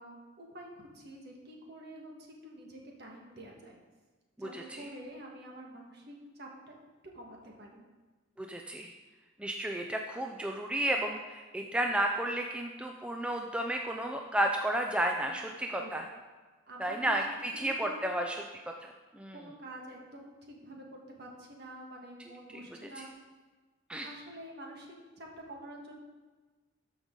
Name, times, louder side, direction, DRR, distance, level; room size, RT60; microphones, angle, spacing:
voice 1, 0.0-3.8 4.4-6.7 7.1-7.8 9.1-9.2 15.2-15.4 15.8-16.0 16.7-17.2 17.5-18.1 19.3-23.1 24.0-24.9 25.2-26.0, right 1 dB, 55° right, 0 dB, 1.5 m, -48 dB
voice 2, 4.4-4.9 8.4-8.9 9.4-16.0 16.8-18.4 18.8-19.4 23.0-23.1 23.9-24.1, right 1 dB, 5° right, 2 dB, 0.3 m, -32 dB
13.0 x 5.3 x 3.8 m, 1.3 s
head